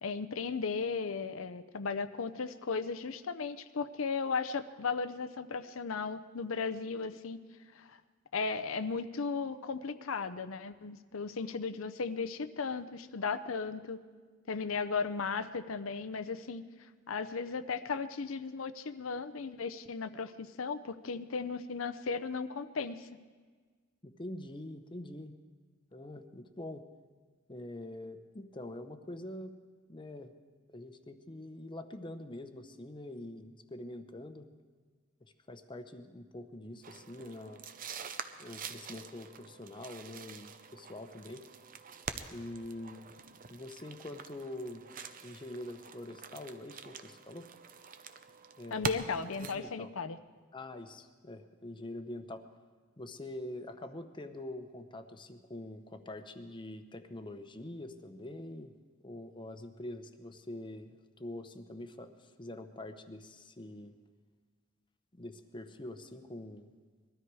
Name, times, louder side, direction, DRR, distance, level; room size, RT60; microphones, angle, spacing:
voice 1, 0.0-7.4 7.7-8.0 8.3-14.0 14.5-16.6 17.1-23.1 48.7-50.2, left 5 dB, 80° left, 11 dB, 0.7 m, -36 dB
voice 2, 24.0-25.3 25.9-26.8 27.5-29.5 29.9-30.3 30.7-34.5 35.2-37.6 38.4-41.4 42.3-43.1 43.5-44.8 45.2-47.5 48.6-48.9 49.4-49.9 50.5-52.4 53.0-58.7 59.0-63.9 65.1-66.7, left 1 dB, 25° left, 8 dB, 0.8 m, -45 dB
sound 1, 36.8-49.6, right 5 dB, 45° right, 0.7 m, -45 dB
21.0 x 13.0 x 4.8 m, 1.5 s
head